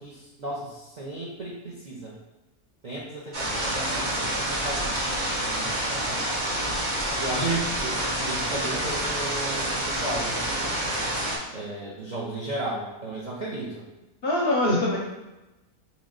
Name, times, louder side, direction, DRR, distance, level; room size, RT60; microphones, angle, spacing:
voice 1, 0.0-2.2 2.8-6.2 7.2-10.8 11.5-13.8, right 1 dB, 55° right, -6 dB, 0.5 m, -35 dB
sound 1, 3.3-11.4, right 1 dB, 35° right, 0.9 m, -28 dB
voice 2, 14.2-15.0, equal, 60° left, -4 dB, 0.6 m, -23 dB
3.1 x 3.0 x 3.8 m, 1.0 s
omnidirectional pair, 1.6 m